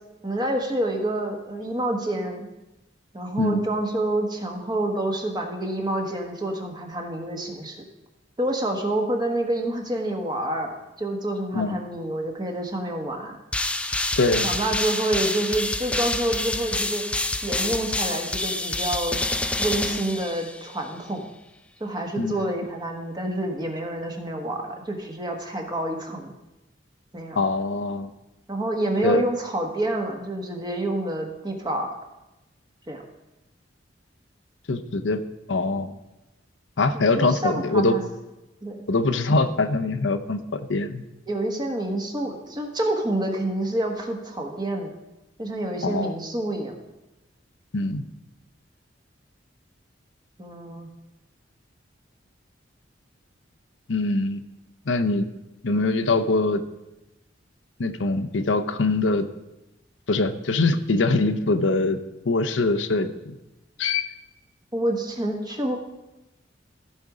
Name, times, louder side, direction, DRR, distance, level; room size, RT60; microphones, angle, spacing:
voice 1, 0.2-2.5 3.1-7.8 8.4-13.4 14.4-17.0 17.4-19.2 19.6-21.3 21.8-26.3 27.1-27.4 28.5-31.9 32.9-33.0 36.9-38.1 38.6-38.8 41.3-44.9 45.4-46.7 50.4-50.9 64.7-65.8, right 1 dB, 25° right, 2 dB, 1.4 m, -28 dB
sound 1, 13.5-20.8, left 2 dB, 5° left, 0.4 m, -27 dB
voice 2, 14.2-14.5 22.2-22.3 27.4-28.1 29.0-29.2 34.7-35.2 35.5-35.9 36.8-38.0 38.9-41.0 45.8-46.2 47.7-48.0 53.9-54.4 54.9-55.2 55.6-56.6 57.8-59.3 60.1-62.0 62.3-63.3 63.8-64.1, left 3 dB, 75° left, 9 dB, 0.7 m, -23 dB
15.0 x 5.3 x 4.8 m, 0.98 s
head